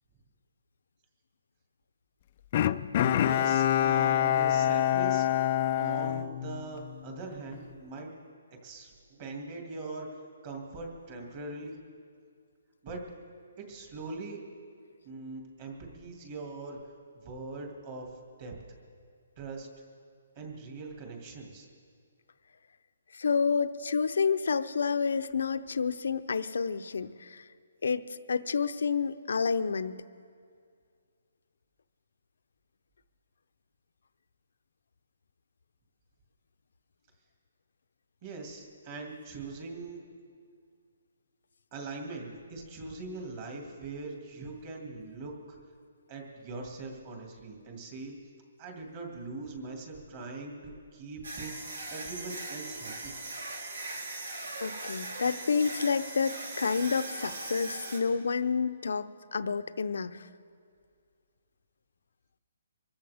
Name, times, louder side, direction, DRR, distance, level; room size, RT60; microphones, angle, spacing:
Bowed string instrument, 2.5-7.0 7.5-7.6, left 11 dB, 30° left, 0.3 m, -26 dB
voice 1, 3.2-5.3 5.8-8.1 8.6-10.1 10.4-11.8 12.8-13.0 13.6-14.4 15.0-16.8 17.2-18.1 18.4-18.5 19.4-19.7 20.4-21.7 38.2-40.0 41.7-45.6 46.1-48.2 48.6-51.5 51.9-53.1, right 3 dB, 30° right, 1 dB, 2.3 m, -41 dB
voice 2, 23.1-27.4 27.8-30.0 54.6-60.2, left 5 dB, 75° left, 12 dB, 0.7 m, -29 dB
sound 1, 51.2-58.0, right 2 dB, 90° right, 3.3 m, -40 dB
24.5 x 14.5 x 3.5 m, 2.2 s
hypercardioid pair, 170°, 0 cm